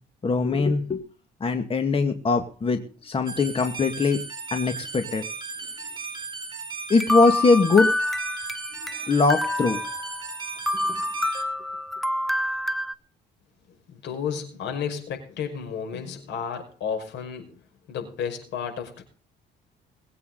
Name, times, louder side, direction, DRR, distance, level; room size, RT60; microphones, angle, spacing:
voice 1, 0.2-1.0 1.4-4.2 4.5-5.2 6.9-7.9 9.1-9.8 10.9-11.0, left 4 dB, 30° left, 6 dB, 1.9 m, -21 dB
sound 1, 3.3-11.4, right 4 dB, 25° right, 3.2 m, -36 dB
sound 2, 7.0-9.0 9.3-10.4 10.7-12.9, left 2 dB, ahead, 0.8 m, -27 dB
voice 2, 13.9-17.6 17.9-19.0, left 7 dB, 75° left, 5 dB, 5.6 m, -32 dB
21.5 x 8.6 x 3.9 m, 0.39 s
cardioid pair, 105°, 19 cm